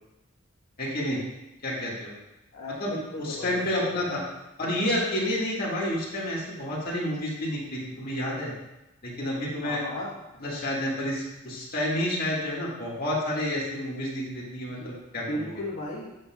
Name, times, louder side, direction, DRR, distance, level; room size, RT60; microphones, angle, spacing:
voice 1, 0.8-1.2 1.6-2.1 2.8-4.2 4.6-8.5 9.0-9.8 10.4-15.5, left 1 dB, 45° left, -5 dB, 1.8 m, -30 dB
voice 2, 2.5-4.2 9.6-10.2 14.7-14.9 15.1-16.1, left 1 dB, 80° left, -5 dB, 1.3 m, -36 dB
8.3 x 6.7 x 2.3 m, 0.97 s
head